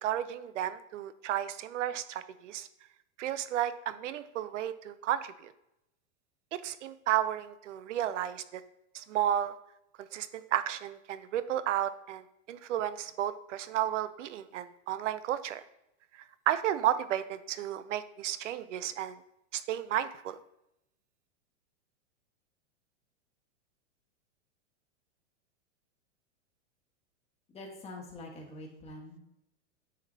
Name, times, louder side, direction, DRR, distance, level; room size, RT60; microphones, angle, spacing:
voice 1, 0.0-2.7 3.2-5.3 6.6-8.6 8.9-9.5 10.1-12.2 12.5-15.6 16.5-19.2 19.5-20.4, right 11 dB, 80° right, 14 dB, 0.7 m, -32 dB
voice 2, 27.5-29.2, left 2 dB, 15° left, 0 dB, 1.5 m, -45 dB
9.2 x 5.1 x 2.8 m, 0.83 s
supercardioid pair, 140°, 36 cm